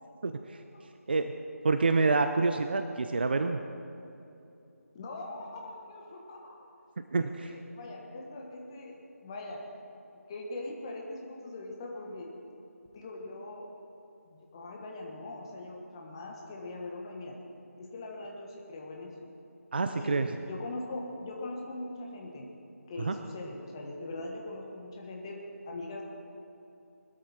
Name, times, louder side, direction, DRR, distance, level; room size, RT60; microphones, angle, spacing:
voice 1, 0.2-0.6 1.1-1.3 1.6-3.6 7.1-7.5 19.7-20.3 23.0-23.1, right 3 dB, 40° right, 8 dB, 0.5 m, -27 dB
voice 2, 4.9-6.6 7.4-9.6 10.3-12.3 12.9-13.7 14.2-17.4 17.8-19.1 19.9-22.5 22.9-26.0, left 2 dB, 15° left, -1 dB, 1.4 m, -41 dB
21.0 x 13.0 x 4.3 m, 2.8 s
figure-of-eight pair, 170°, 9 cm